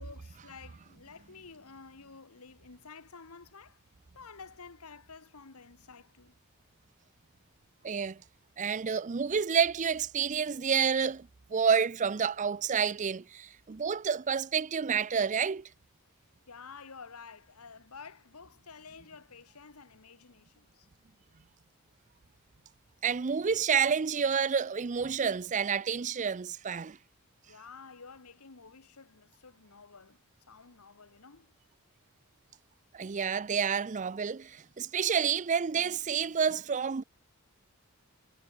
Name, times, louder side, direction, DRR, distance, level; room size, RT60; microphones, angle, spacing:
voice 1, 0.0-3.8 4.1-6.3 16.5-20.9 27.5-31.5, left 5 dB, 75° left, 1.4 m, -51 dB
voice 2, 7.8-8.2 8.6-15.7 23.0-27.0 32.9-37.0, right 6 dB, 35° right, 0.5 m, -29 dB
head